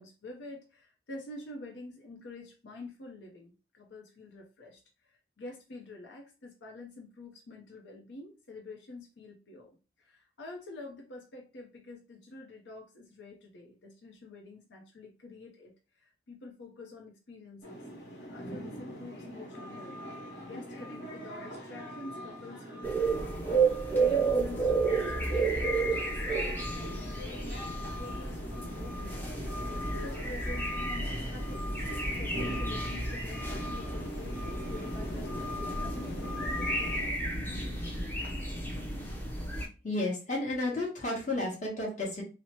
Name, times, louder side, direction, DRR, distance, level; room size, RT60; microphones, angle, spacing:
voice 1, 0.0-9.7 10.0-15.7 16.0-17.8 18.3-23.5 23.9-31.8 32.2-37.5, left 2 dB, 90° left, 1 dB, 0.6 m, -47 dB
sound 1, 17.6-37.1, left 1 dB, 60° left, 1.2 m, -41 dB
sound 2, 22.8-39.6, right 3 dB, 10° left, 0.5 m, -32 dB
voice 2, 39.8-42.2, left 2 dB, 45° left, -2 dB, 1.1 m, -32 dB
2.8 x 2.0 x 3.0 m, 0.32 s
head